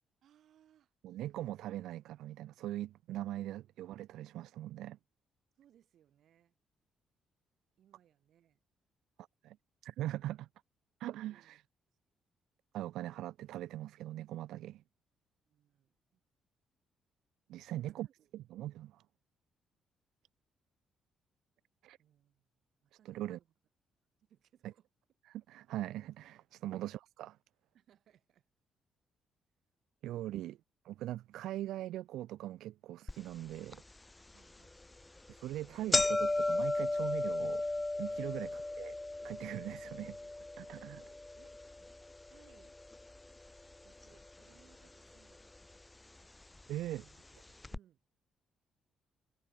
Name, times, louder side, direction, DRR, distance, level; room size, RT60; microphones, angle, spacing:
voice 1, 0.2-1.7 3.5-3.7 5.6-6.5 7.8-8.6 11.3-11.6 15.5-16.2 17.5-18.3 22.0-22.5 22.8-23.5 24.2-24.9 26.5-26.6 27.7-28.5 34.3-34.8 40.6-41.6 42.3-42.8 43.8-46.3 47.7-48.0, right 10 dB, 70° right, 5.7 m, -67 dB
voice 2, 1.0-5.0 9.4-9.6 9.8-10.5 11.0-11.6 12.7-14.8 17.5-18.1 18.3-19.0 21.8-22.0 23.0-23.4 25.3-27.4 30.0-30.6 30.8-33.8 35.3-37.6 38.0-38.5 38.8-38.9 39.2-40.2 40.6-41.0 46.7-47.1, right 14 dB, 85° right, 1.1 m, -41 dB
sound 1, 33.1-33.2 33.7-33.8 34.6-34.8 35.2-35.3 35.5-43.7 44.0-44.8 45.6-45.7 46.6-46.7 47.0-47.1 47.6-47.8, left 2 dB, 15° left, 0.4 m, -35 dB
cardioid pair, 90°, 0 cm